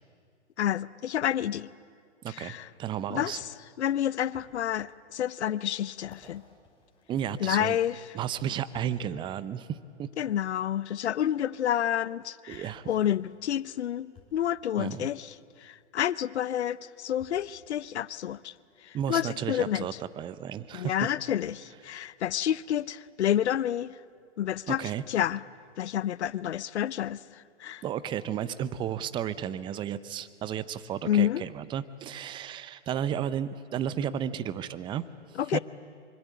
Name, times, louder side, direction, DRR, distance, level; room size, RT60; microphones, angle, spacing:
voice 1, 0.6-1.7 2.3-2.7 3.1-3.5 3.8-6.4 7.4-8.0 10.2-18.5 18.8-19.9 20.7-24.0 24.4-25.4 25.8-27.8 31.0-31.4 35.4-35.6, left 10 dB, 65° left, 20 dB, 0.7 m, -29 dB
voice 2, 2.2-3.4 7.1-7.8 8.1-10.1 12.5-12.9 14.8-15.1 18.9-21.1 24.7-25.0 27.8-35.0 35.3-35.6, right 9 dB, 15° right, 15 dB, 0.6 m, -33 dB
sound 1, 4.3-4.5 5.1-5.2 5.9-7.8 8.7-9.1 10.3-10.4 11.7-11.8 12.5-12.8 14.1-14.4 16.0-16.1 17.2-17.5 18.3-18.4, left 5 dB, 15° left, 5.8 m, -56 dB
25.0 x 24.5 x 8.4 m, 2.1 s
hypercardioid pair, 120°, 36 cm